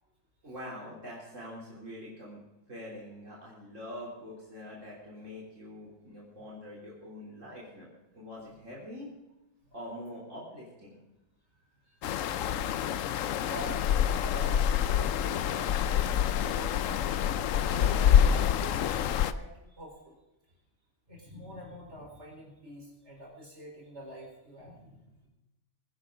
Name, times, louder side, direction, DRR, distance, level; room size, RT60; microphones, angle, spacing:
voice 1, 0.4-2.4 2.7-7.9 8.1-9.1 9.7-11.0, left 1 dB, 80° right, -5 dB, 3.8 m, -44 dB
voice 2, 11.8-12.3 13.3-15.7 16.3-17.2 17.7-20.1 21.1-25.3, equal, 60° right, -1 dB, 4.4 m, -46 dB
sound 1, 12.0-19.3, left 9 dB, 85° left, 1.0 m, -26 dB
22.5 x 10.5 x 3.8 m, 1.0 s
omnidirectional pair, 1.3 m